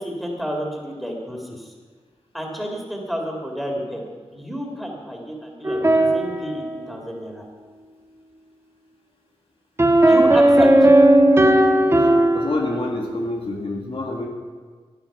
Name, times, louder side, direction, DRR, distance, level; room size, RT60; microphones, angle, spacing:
voice 1, 0.0-1.7 2.3-4.0 4.3-7.4 10.1-10.9, equal, ahead, 0 dB, 3.5 m, -30 dB
sound 1, 5.6-7.3 9.8-13.0, right 1 dB, 25° right, 1.6 m, -16 dB
voice 2, 12.3-14.3, left 2 dB, 60° left, 0 dB, 1.9 m, -27 dB
16.0 x 11.5 x 5.8 m, 1.5 s
wide cardioid pair, 95°, 11 cm